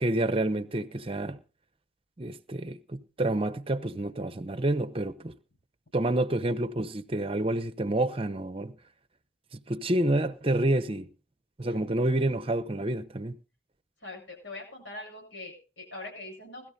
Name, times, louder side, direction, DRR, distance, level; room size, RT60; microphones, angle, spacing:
voice 1, 0.0-1.4 2.2-5.4 5.9-8.7 9.5-11.1 11.6-13.4, right 1 dB, 30° right, 0.8 m, -28 dB
voice 2, 14.0-16.7, left 2 dB, 85° left, 7.9 m, -42 dB
20.5 x 13.0 x 2.7 m
head